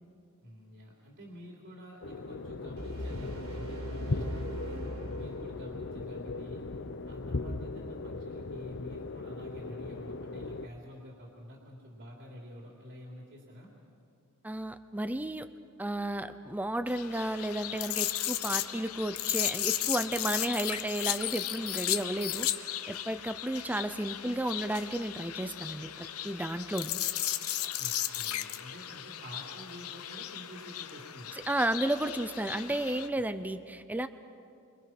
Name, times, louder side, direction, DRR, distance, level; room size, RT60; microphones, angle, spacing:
voice 1, 0.4-4.8 5.1-6.6 7.0-13.7 27.8-31.3, equal, 55° right, -2 dB, 3.3 m, -48 dB
sound 1, 2.0-10.7, left 3 dB, 60° left, 0.8 m, -38 dB
sound 2, 2.8-5.8, right 1 dB, 75° right, 4.5 m, -40 dB
voice 2, 14.4-15.5 15.8-22.5 22.9-26.9 31.3-34.1, right 1 dB, 10° right, 10 dB, 0.6 m, -33 dB
sound 3, 16.9-33.1, left 12 dB, 90° left, 1.0 m, -35 dB
28.5 x 25.0 x 6.0 m, 2.3 s
head